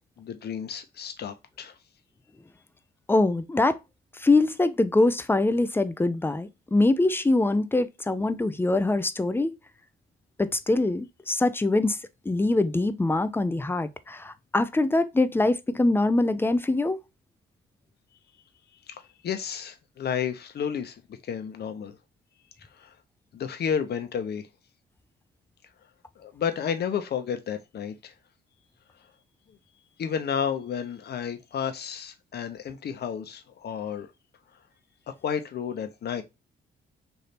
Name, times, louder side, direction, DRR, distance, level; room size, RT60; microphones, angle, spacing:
voice 1, 0.2-1.8 18.9-22.0 22.6-22.9 23.3-24.5 26.2-28.1 30.0-34.1 35.2-36.2, left 7 dB, 55° left, 0.8 m, -32 dB
voice 2, 3.1-3.8 4.2-9.5 10.4-12.0 12.3-17.0, left 2 dB, 10° left, 0.4 m, -23 dB
3.3 x 2.7 x 4.1 m
cardioid pair, 90°, 20 cm